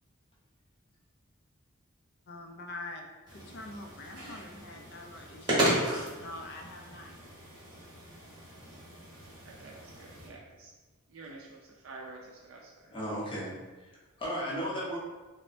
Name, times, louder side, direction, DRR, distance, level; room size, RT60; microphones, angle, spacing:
voice 1, 2.3-3.0 3.3-7.1, left 2 dB, 55° left, 2 dB, 0.4 m, -45 dB
sound 1, 3.3-10.3, right 1 dB, 20° right, 0.8 m, -35 dB
voice 2, 9.4-10.7 11.1-12.7, right 3 dB, 75° right, -2 dB, 0.4 m, -48 dB
voice 3, 12.9-13.5 13.8-15.0, equal, 25° left, -6 dB, 0.7 m, -35 dB
3.2 x 2.0 x 2.5 m, 1.2 s
head